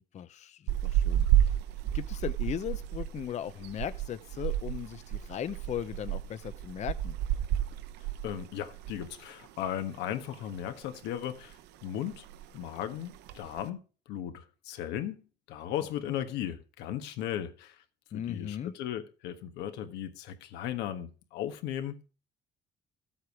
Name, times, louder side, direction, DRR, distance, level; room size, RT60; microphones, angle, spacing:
voice 1, 0.0-1.5 1.9-7.2 16.0-16.1 18.1-18.7, left 10 dB, 45° left, 0.6 m, -38 dB
sound 1, 0.7-9.2 9.4-9.7 10.1-10.9 11.2-11.6 11.9-12.0 12.1-12.6 13.1-13.6, right 12 dB, 90° right, 0.9 m, -31 dB
voice 2, 8.2-12.3 12.5-17.8 18.1-22.0, left 10 dB, 90° left, 1.5 m, -37 dB
13.0 x 8.1 x 4.7 m
cardioid pair, 110°, 17 cm